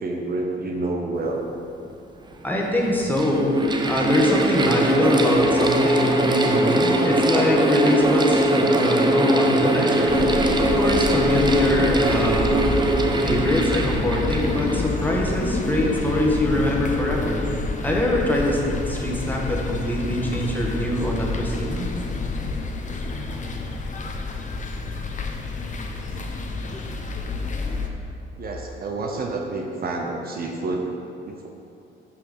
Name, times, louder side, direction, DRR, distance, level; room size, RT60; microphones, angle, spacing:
voice 1, 0.0-1.4 28.4-30.9 31.2-31.5, right 2 dB, 50° right, 1 dB, 0.8 m, -28 dB
Mechanical fan, 1.9-2.0 2.8-15.5, right 1 dB, 20° right, 0.6 m, -21 dB
voice 2, 2.4-3.6 3.8-12.7 13.2-17.4 17.8-21.9, left 1 dB, 10° left, -2 dB, 1.4 m, -23 dB
sound 1, 5.4-15.0, left 3 dB, 80° left, 1.8 m, -40 dB
sound 2, 10.1-27.9, left 3 dB, 40° left, 0.8 m, -28 dB
6.1 x 5.5 x 5.2 m, 2.7 s
cardioid pair, 90°, 20 cm